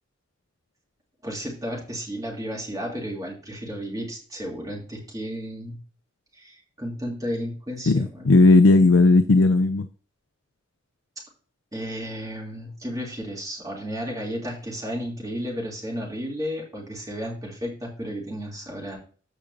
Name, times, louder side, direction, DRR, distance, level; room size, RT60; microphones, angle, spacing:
voice 1, 1.2-5.8 6.3-8.3 11.7-19.0, equal, 15° right, -2 dB, 3.1 m, -33 dB
voice 2, 7.9-9.9, left 3 dB, 65° left, 11 dB, 0.5 m, -16 dB
14.5 x 5.0 x 2.8 m, 0.40 s
head